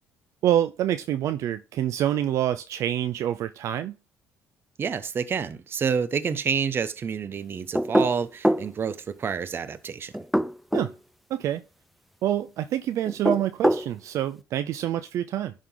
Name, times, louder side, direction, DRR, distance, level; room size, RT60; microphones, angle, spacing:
voice 1, 0.4-3.9 10.7-10.9 11.3-11.6 12.2-15.5, right 11 dB, 65° right, 0.5 m, -26 dB
voice 2, 4.8-10.2, right 6 dB, 45° right, 0.9 m, -28 dB
sound 1, 7.7-8.7 10.1-10.9 13.1-13.9, equal, ahead, 0.3 m, -23 dB
11.0 x 3.8 x 3.8 m
supercardioid pair, 85°, 6 cm